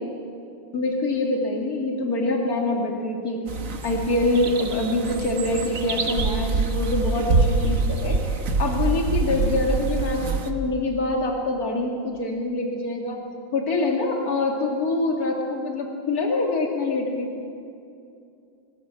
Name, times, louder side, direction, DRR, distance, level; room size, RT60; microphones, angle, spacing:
voice 1, 0.7-3.4 3.8-13.2 13.5-17.3, left 2 dB, 45° left, 0 dB, 2.9 m, -25 dB
sound 1, 3.5-10.5, right 3 dB, 45° right, 1.5 m, -25 dB
25.0 x 16.0 x 7.6 m, 2.5 s
omnidirectional pair, 2.3 m